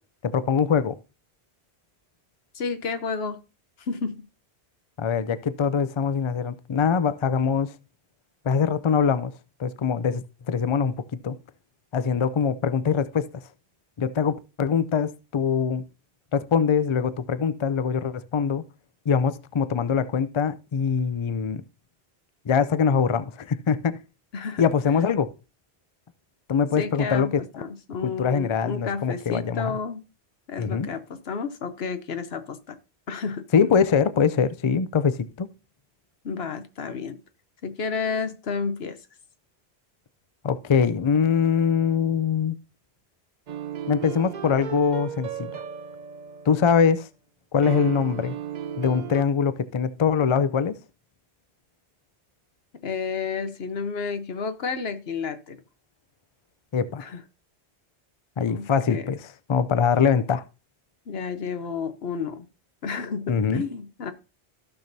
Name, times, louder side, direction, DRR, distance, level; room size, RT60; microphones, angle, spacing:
voice 1, 0.2-1.0 5.0-7.7 8.4-9.3 9.6-11.4 11.9-13.3 14.0-15.8 16.3-18.6 19.1-21.6 22.5-24.0 24.6-25.3 26.5-27.4 28.0-29.7 30.6-30.9 33.5-35.5 40.4-42.6 43.9-45.5 46.5-47.1 47.5-48.4 48.8-50.7 56.7-57.1 58.4-59.2 59.5-60.4 63.3-63.6, left 6 dB, 45° left, 0.3 m, -23 dB
voice 2, 2.5-3.4 3.8-4.3 24.3-24.6 26.8-30.0 30.5-32.8 33.1-33.4 36.2-37.2 37.6-39.0 52.8-55.6 57.0-57.2 58.5-59.1 61.1-62.4 62.8-64.1, left 5 dB, 70° left, 1.1 m, -31 dB
sound 1, 43.5-46.8 47.6-49.2, right 8 dB, 50° right, 0.6 m, -35 dB
15.5 x 6.0 x 2.7 m
omnidirectional pair, 1.1 m